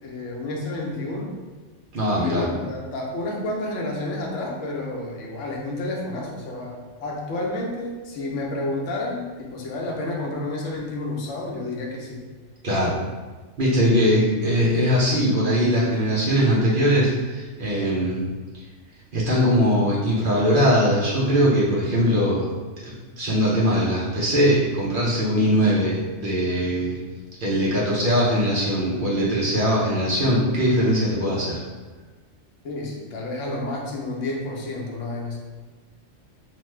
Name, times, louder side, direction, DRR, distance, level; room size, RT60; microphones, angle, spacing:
voice 1, 0.0-1.3 2.2-12.2 32.6-35.4, left 2 dB, 75° left, -1 dB, 1.0 m, -30 dB
voice 2, 1.9-2.4 12.6-13.0 13.6-18.3 19.1-22.5 22.8-27.0 27.4-31.6, equal, 55° right, -6 dB, 0.7 m, -21 dB
3.0 x 2.1 x 3.2 m, 1.3 s
omnidirectional pair, 1.3 m